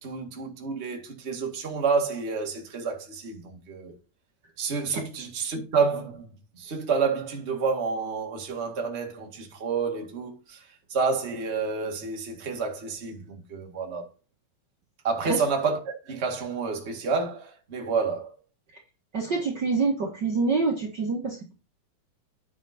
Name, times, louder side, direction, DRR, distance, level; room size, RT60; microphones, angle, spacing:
voice 1, 0.0-3.9 4.6-6.3 6.5-10.6 10.9-14.1 15.0-18.3, right 5 dB, 25° right, 1.8 m, -29 dB
voice 2, 19.1-21.5, right 4 dB, 45° right, 1.8 m, -26 dB
9.4 x 6.4 x 4.3 m
omnidirectional pair, 3.3 m